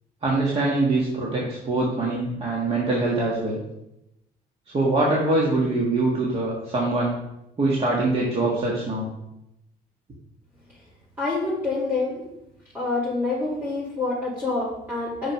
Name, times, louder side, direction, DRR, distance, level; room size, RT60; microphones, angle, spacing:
voice 1, 0.2-3.6 4.7-7.2 7.6-9.1, right 2 dB, 35° right, -3 dB, 1.6 m, -23 dB
voice 2, 11.2-12.2 12.7-15.3, left 3 dB, 10° right, -9 dB, 2.9 m, -27 dB
6.4 x 6.0 x 4.8 m, 0.87 s
cardioid pair, 110°, 17 cm